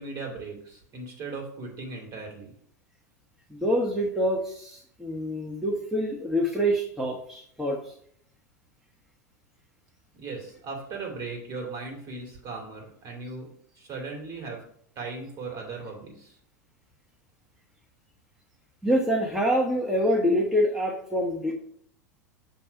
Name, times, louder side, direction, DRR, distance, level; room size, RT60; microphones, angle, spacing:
voice 1, 0.0-2.5 10.1-14.6 15.0-16.3, right 3 dB, 40° right, 1 dB, 2.3 m, -38 dB
voice 2, 3.5-7.9 18.8-21.5, equal, 5° right, -1 dB, 1.0 m, -26 dB
7.1 x 2.8 x 5.6 m, 0.64 s
hypercardioid pair, 90°, 9 cm